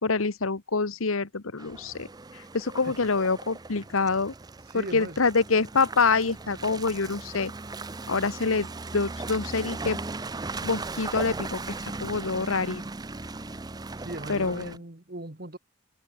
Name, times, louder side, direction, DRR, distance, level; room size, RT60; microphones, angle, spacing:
voice 1, 0.0-2.1 2.5-4.3 4.7-7.5 8.1-8.7 8.9-10.0 10.6-12.8 14.3-14.7, left 4 dB, 90° left, 1.2 m, -26 dB
Car passing by / Engine, 1.6-14.8, right 3 dB, 20° right, 0.5 m, -38 dB
voice 2, 4.7-5.2 14.0-15.6, right 1 dB, 45° right, 1.7 m, -39 dB
head